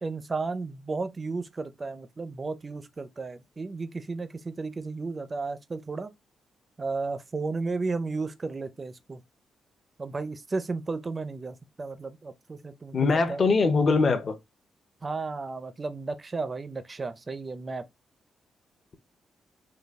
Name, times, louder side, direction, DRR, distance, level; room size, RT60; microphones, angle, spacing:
voice 1, 0.0-6.1 6.8-9.2 10.0-13.4 15.0-17.8, right 3 dB, 25° right, 0.5 m, -33 dB
voice 2, 12.9-14.4, left 4 dB, 35° left, 0.6 m, -22 dB
5.2 x 2.3 x 3.4 m
wide cardioid pair, 165°, 0 cm